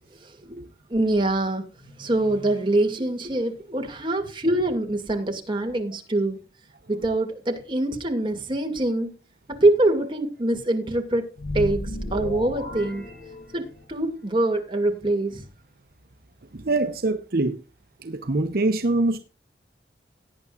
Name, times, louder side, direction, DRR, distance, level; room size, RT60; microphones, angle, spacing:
voice 1, 0.2-0.6 0.9-6.4 6.9-9.1 9.5-11.3 11.5-13.1 13.5-15.5, right 2 dB, 30° right, 2.3 m, -24 dB
sound 1, 11.4-13.9, left 1 dB, 65° left, 2.8 m, -33 dB
voice 2, 16.5-17.6 18.0-19.2, right 2 dB, 55° right, 0.9 m, -24 dB
17.5 x 9.6 x 2.5 m
head